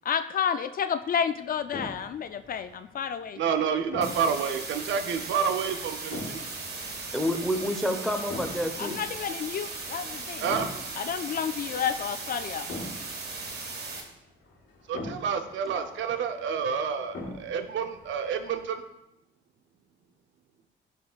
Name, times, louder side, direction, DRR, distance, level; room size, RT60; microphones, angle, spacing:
voice 1, 0.0-3.4 8.8-10.5 11.0-12.7, left 8 dB, 45° left, 11 dB, 0.4 m, -30 dB
sound 1, 1.4-18.8, left 2 dB, 70° left, 1.6 m, -44 dB
voice 2, 3.4-6.4 10.4-10.7 14.9-18.8, right 6 dB, 70° right, 8 dB, 0.7 m, -29 dB
sound 2, 4.0-14.0, right 3 dB, 55° right, 1.4 m, -37 dB
voice 3, 7.1-9.0 15.6-15.9, equal, ahead, 5 dB, 0.9 m, -29 dB
11.5 x 5.3 x 2.4 m, 0.86 s
cardioid pair, 90°, 20 cm